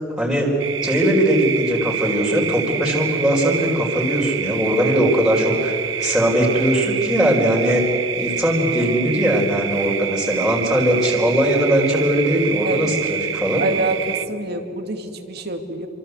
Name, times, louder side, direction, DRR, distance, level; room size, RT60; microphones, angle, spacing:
voice 1, 0.2-0.5 0.8-7.8 8.2-13.7, equal, ahead, -4 dB, 4.4 m, -19 dB
sound 1, 0.6-14.3, right 9 dB, 85° right, 1.1 m, -27 dB
voice 2, 12.6-13.0 13.6-15.9, right 2 dB, 60° right, 7 dB, 2.4 m, -26 dB
28.0 x 25.0 x 8.2 m, 2.8 s
head